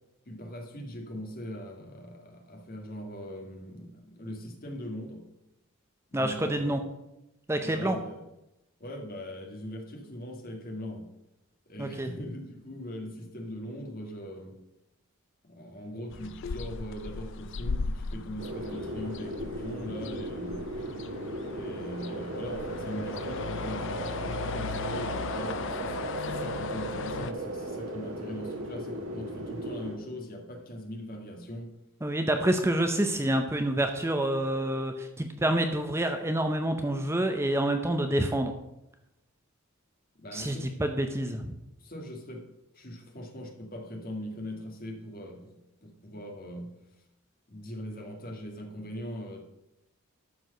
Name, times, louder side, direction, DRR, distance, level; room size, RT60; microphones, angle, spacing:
voice 1, 0.3-5.2 6.1-6.8 7.6-8.2 8.8-11.1 11.7-14.6 15.4-20.6 21.5-31.7 40.2-40.7 41.8-42.5 42.7-45.6 45.8-46.7 47.5-49.4, equal, 40° left, 3 dB, 1.8 m, -40 dB
voice 2, 6.1-6.8 7.5-8.0 11.8-12.1 32.0-38.5 40.3-41.6, right 1 dB, 10° right, 5 dB, 0.6 m, -28 dB
sound 1, 16.1-27.3, left 5 dB, 55° left, 0.4 m, -38 dB
sound 2, 18.4-29.9, right 1 dB, 70° right, 1.9 m, -36 dB
12.5 x 4.7 x 6.6 m, 0.89 s
head